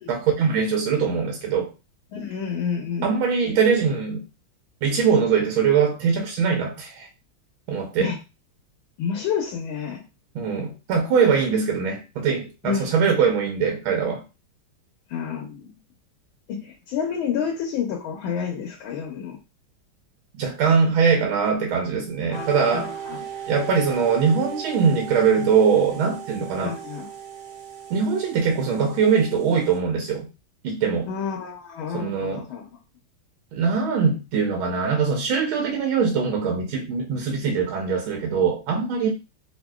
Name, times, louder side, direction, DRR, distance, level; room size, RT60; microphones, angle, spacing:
voice 1, 0.1-1.7 3.0-4.2 4.8-7.1 7.7-8.1 10.3-14.2 20.4-23.0 23.5-26.8 27.9-30.3 30.6-31.1 31.9-32.4 33.5-39.1, right 6 dB, 80° right, 1 dB, 1.4 m, -22 dB
voice 2, 2.1-3.1 8.0-8.2 9.0-10.0 12.6-12.9 15.1-15.7 16.5-19.4 22.3-23.2 26.6-27.1 31.1-32.7, left 7 dB, 80° left, 1 dB, 1.4 m, -29 dB
sound 1, 22.3-29.8, right 9 dB, 60° right, 1.4 m, -37 dB
3.5 x 2.5 x 2.2 m, 0.28 s
omnidirectional pair, 2.3 m